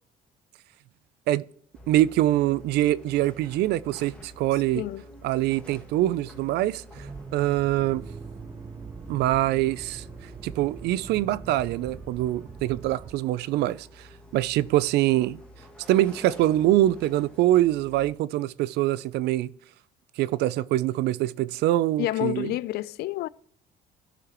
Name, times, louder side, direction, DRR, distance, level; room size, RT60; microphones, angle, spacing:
sound 1, 1.7-18.1, left 1 dB, 5° left, 1.9 m, -48 dB
voice 1, 1.9-4.8 5.2-8.1 9.1-10.0 10.4-14.1 14.3-15.4 15.9-19.5 20.2-22.5, right 15 dB, 80° right, 0.5 m, -24 dB
Accelerating revving vroom, 6.9-13.2, right 5 dB, 25° right, 0.5 m, -43 dB
voice 2, 22.0-23.3, left 15 dB, 70° left, 0.4 m, -29 dB
16.0 x 5.9 x 3.0 m
cardioid pair, 110°, 17 cm